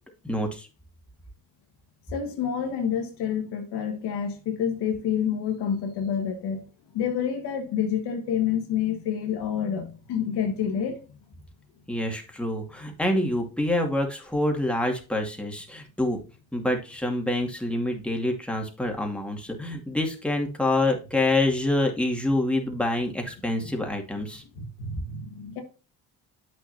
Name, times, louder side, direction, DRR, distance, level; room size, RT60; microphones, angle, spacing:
voice 1, 0.2-0.7 11.9-16.2 16.5-24.4, left 1 dB, 5° left, 2.2 m, -26 dB
voice 2, 2.1-6.7 6.9-11.1 23.6-23.7 24.6-25.6, left 8 dB, 85° left, 1.7 m, -28 dB
8.3 x 6.4 x 2.7 m
supercardioid pair, 75°, 39 cm